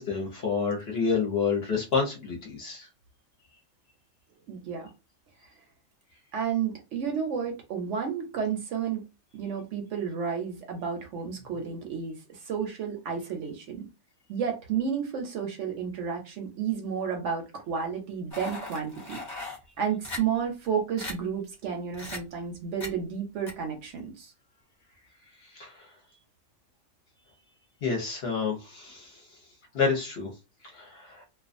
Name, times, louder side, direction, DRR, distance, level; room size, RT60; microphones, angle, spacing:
voice 1, 0.0-2.9 25.5-25.9 27.8-29.2 29.7-30.3 30.7-31.2, left 5 dB, 55° left, 0 dB, 0.8 m, -29 dB
voice 2, 4.5-4.9 6.3-9.0 9.3-13.9 14.3-19.2 19.8-24.3, right 7 dB, 65° right, 3 dB, 0.8 m, -31 dB
sound 1, 18.3-19.6 20.0-20.2 20.6-20.7 21.0-21.1 21.9-22.2 22.8-22.9 23.5-23.6, left 2 dB, 20° left, 0.5 m, -37 dB
2.3 x 2.3 x 2.5 m, 0.27 s
omnidirectional pair, 1.5 m